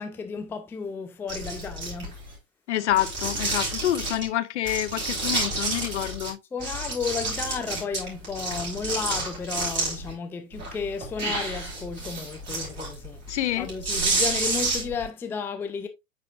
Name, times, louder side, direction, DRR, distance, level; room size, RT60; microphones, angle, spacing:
voice 1, 0.0-2.2 6.5-13.2 13.6-15.9, left 5 dB, 5° left, 0.4 m, -33 dB
sound 1, 1.3-2.3 2.9-4.3 4.7-6.3 6.6-10.1 10.5-15.1, right 2 dB, 25° right, 4.2 m, -30 dB
voice 2, 2.7-6.4 13.3-13.7, left 13 dB, 60° left, 0.8 m, -27 dB
9.5 x 4.3 x 2.5 m
figure-of-eight pair, 100°, 40 cm